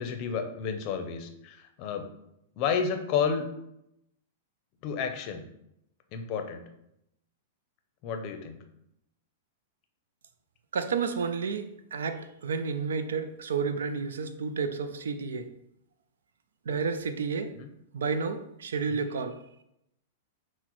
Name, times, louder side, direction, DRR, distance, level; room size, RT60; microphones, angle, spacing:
voice 1, 0.0-2.1 2.6-3.4 4.8-5.4 6.1-6.6 8.0-8.6 17.6-17.7 18.9-19.1, left 6 dB, 40° left, 6 dB, 0.5 m, -31 dB
voice 2, 10.7-15.5 16.7-17.5 17.9-19.4, right 5 dB, 90° right, 9 dB, 0.4 m, -31 dB
6.0 x 2.1 x 3.0 m, 0.81 s
hypercardioid pair, 140°, 0 cm